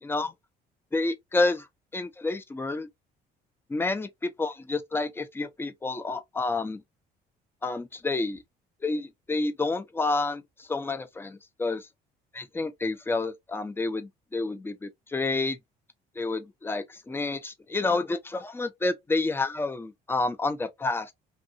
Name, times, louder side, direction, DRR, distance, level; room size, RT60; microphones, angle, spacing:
voice 1, 0.0-0.3 0.9-1.7 1.9-2.9 3.7-4.1 4.4-6.8 7.6-8.4 8.8-11.9 12.4-15.6 16.2-21.1, left 3 dB, 15° left, 0.4 m, -29 dB
2.6 x 2.6 x 2.6 m
cardioid pair, 110°, 17 cm